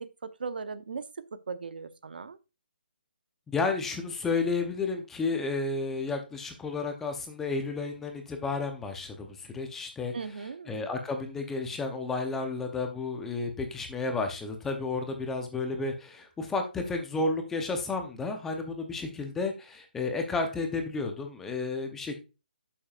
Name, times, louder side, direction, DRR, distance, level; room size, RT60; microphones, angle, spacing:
voice 1, 0.0-2.4 10.1-10.7, right 5 dB, 65° right, 0.7 m, -38 dB
voice 2, 3.5-10.1 10.7-22.2, left 3 dB, 5° left, 0.7 m, -32 dB
10.0 x 7.2 x 2.4 m
hypercardioid pair, 170°, 5 cm